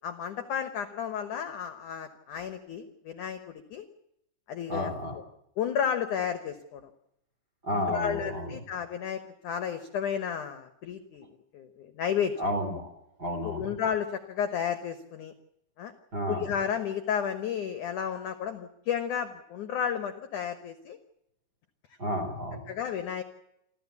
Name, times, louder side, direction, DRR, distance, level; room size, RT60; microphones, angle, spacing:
voice 1, 0.0-3.9 4.5-5.0 5.6-6.9 7.7-11.3 11.5-12.3 13.4-15.3 15.8-15.9 16.3-21.0 22.7-23.2, left 8 dB, 65° left, 9 dB, 2.0 m, -32 dB
voice 2, 4.7-5.2 7.6-8.5 12.4-12.9 13.2-13.7 16.1-16.5 22.0-22.6, equal, 25° right, 7 dB, 3.4 m, -31 dB
28.5 x 13.5 x 8.4 m, 0.82 s
omnidirectional pair, 5.2 m